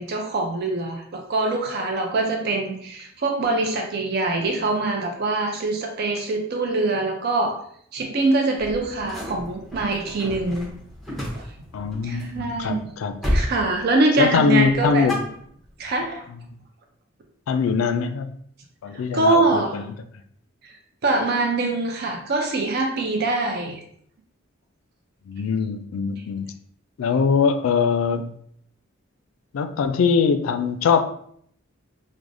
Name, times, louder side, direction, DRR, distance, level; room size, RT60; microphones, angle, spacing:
voice 1, 0.0-7.5 7.9-10.7 11.4-11.5 12.0-12.9 13.3-15.1 15.8-16.3 18.9-19.8 20.6-20.8 21.0-23.8, right 2 dB, 50° right, 2 dB, 0.4 m, -24 dB
sound 1, 8.6-12.8 13.2-13.6 13.9-14.3 14.6-15.9, left 1 dB, ahead, 0.7 m, -31 dB
voice 2, 11.7-13.2 14.2-15.2 17.5-18.3 18.8-19.9 25.3-26.5 27.0-28.3 29.5-31.0, left 5 dB, 80° left, 9 dB, 0.3 m, -22 dB
4.7 x 2.1 x 2.5 m, 0.66 s
head